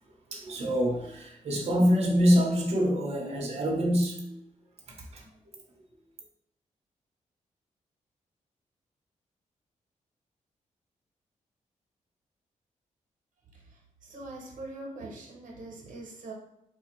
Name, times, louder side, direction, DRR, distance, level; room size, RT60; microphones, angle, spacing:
voice 1, 0.3-4.4 4.9-5.3, equal, 50° right, -1 dB, 0.7 m, -26 dB
voice 2, 14.0-16.3, right 2 dB, 90° right, -1 dB, 0.9 m, -42 dB
3.8 x 2.5 x 2.9 m, 0.78 s
wide cardioid pair, 175°, 13 cm